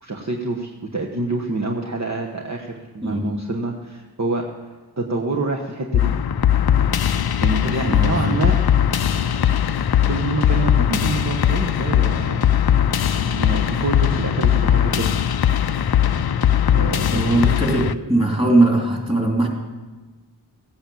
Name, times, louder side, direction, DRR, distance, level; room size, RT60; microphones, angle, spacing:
voice 1, 0.0-4.4 5.0-6.1 7.4-8.5 10.0-12.4 13.2-15.1 16.7-17.5, right 2 dB, 40° right, 0 dB, 1.2 m, -27 dB
voice 2, 3.0-3.5 7.9-8.5 17.1-19.5, right 2 dB, 15° right, 0 dB, 3.2 m, -20 dB
sound 1, 5.9-17.9, left 9 dB, 60° left, 0.6 m, -19 dB
17.0 x 8.7 x 7.2 m, 1.3 s
wide cardioid pair, 95°, 41 cm